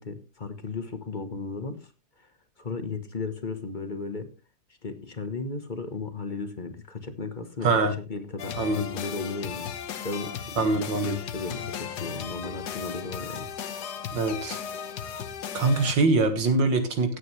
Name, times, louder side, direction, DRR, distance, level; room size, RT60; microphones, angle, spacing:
voice 1, 0.0-2.3 2.6-4.3 4.8-9.7 10.0-13.5, left 4 dB, 30° left, 9 dB, 1.2 m, -35 dB
voice 2, 7.6-7.9 8.6-8.9 10.6-11.2 14.1-14.6 15.5-17.2, right 3 dB, 80° right, 7 dB, 2.4 m, -23 dB
sound 1, 8.4-15.9, left 8 dB, 65° left, 1.5 m, -36 dB
17.0 x 8.5 x 3.2 m, 0.31 s
omnidirectional pair, 2.0 m